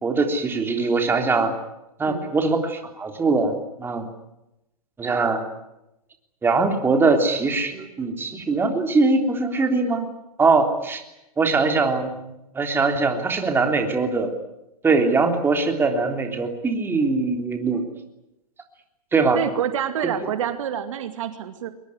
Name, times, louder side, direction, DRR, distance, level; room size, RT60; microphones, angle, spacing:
voice 1, 0.0-1.5 2.0-4.1 5.0-5.4 6.4-10.1 10.4-11.0 11.4-12.2 12.6-14.3 14.8-17.8 19.1-19.4, right 3 dB, 10° right, 4 dB, 3.4 m, -21 dB
voice 2, 19.3-21.7, right 9 dB, 55° right, 9 dB, 2.2 m, -27 dB
22.5 x 22.0 x 9.7 m, 0.88 s
hypercardioid pair, 125°, 19 cm